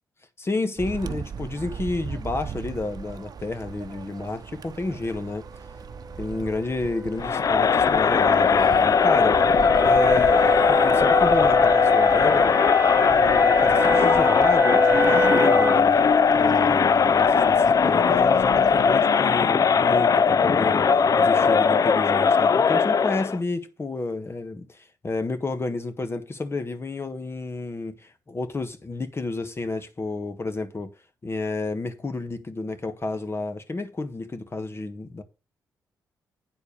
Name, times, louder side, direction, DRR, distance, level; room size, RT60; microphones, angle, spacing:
voice 1, 0.4-5.5 6.2-9.4 9.8-12.6 12.9-16.0 16.4-30.9 31.2-35.2, left 2 dB, 35° left, 1.6 m, -30 dB
sound 1, 0.8-19.2, right 6 dB, 60° right, 0.8 m, -39 dB
sound 2, 6.0-15.9, equal, 25° right, 2.2 m, -27 dB
Crowd, 7.2-23.4, left 6 dB, 50° left, 0.5 m, -19 dB
9.3 x 4.5 x 6.8 m
supercardioid pair, 55°, 8 cm